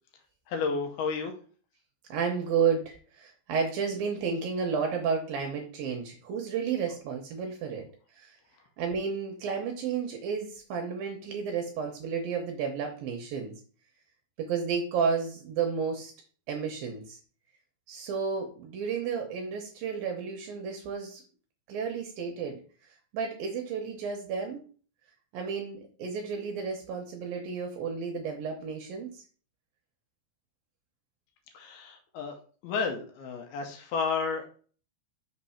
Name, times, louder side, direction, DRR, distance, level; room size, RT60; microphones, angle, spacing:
voice 1, 0.5-1.3 31.5-34.5, left 5 dB, 75° left, 4 dB, 2.7 m, -32 dB
voice 2, 2.1-7.8 8.2-8.3 8.8-13.5 14.4-16.1 16.5-17.2 17.9-21.2 21.7-22.6 23.1-24.6 25.3-29.1, right 6 dB, 75° right, 3 dB, 2.3 m, -32 dB
6.2 x 3.4 x 5.5 m, 0.41 s
omnidirectional pair, 4.8 m